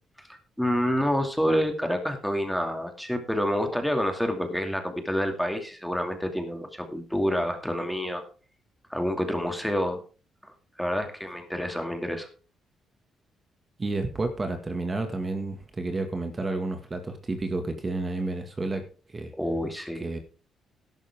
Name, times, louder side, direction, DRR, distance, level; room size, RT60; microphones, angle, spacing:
voice 1, 0.2-8.2 8.9-10.0 10.4-10.5 10.8-12.3 19.4-20.1, equal, ahead, 5 dB, 2.5 m, -28 dB
voice 2, 13.8-18.8 19.1-19.3 20.0-20.2, right 2 dB, 25° right, 6 dB, 2.0 m, -30 dB
12.5 x 11.5 x 3.7 m, 0.37 s
cardioid pair, 90°, 0 cm